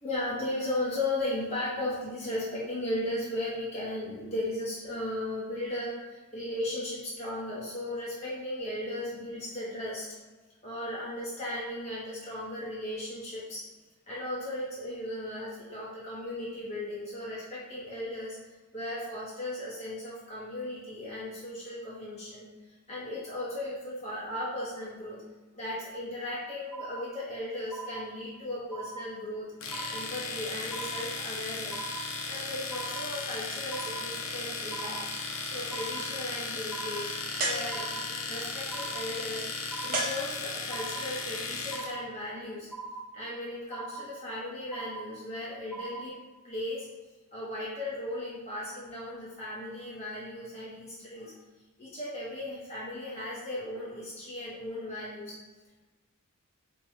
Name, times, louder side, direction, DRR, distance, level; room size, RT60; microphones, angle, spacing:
voice 1, 0.0-10.1 10.6-13.7 14.1-18.4 18.7-22.5 22.9-25.2 25.5-29.5 29.9-31.8 32.2-35.0 35.4-39.5 39.8-42.7 43.1-46.2 46.4-46.9 47.3-51.3 51.8-55.4, left 1 dB, 30° left, -8 dB, 0.9 m, -36 dB
sound 1, 26.7-27.4 27.7-28.4 28.7-29.4 29.7-30.4 30.7-31.4 31.7-32.4 32.7-33.4 33.7-34.4 34.7-35.4 35.7-36.4 36.7-37.4 37.7-38.4 38.7-39.4 39.7-40.4 40.7-41.4 41.7-42.4 42.7-43.4 43.7-44.4 44.7-45.4 45.7-46.4, right 4 dB, 10° left, 0.4 m, -42 dB
Domestic sounds home sounds, 29.6-41.9, left 4 dB, 65° left, 0.5 m, -36 dB
sound 2, 37.4-38.3 39.9-40.9, right 1 dB, 40° right, 0.6 m, -34 dB
4.4 x 2.2 x 3.1 m, 1.3 s
head